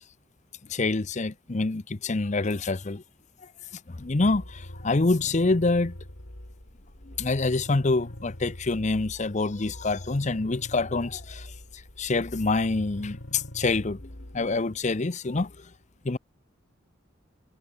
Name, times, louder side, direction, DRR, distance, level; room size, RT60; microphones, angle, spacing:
voice 1, 0.7-3.0 3.9-5.9 7.1-11.5 12.0-15.6 16.0-16.2, left 3 dB, 40° left, 0.7 m, -26 dB
sound 1, 4.0-14.6, left 1 dB, 80° left, 3.9 m, -43 dB
head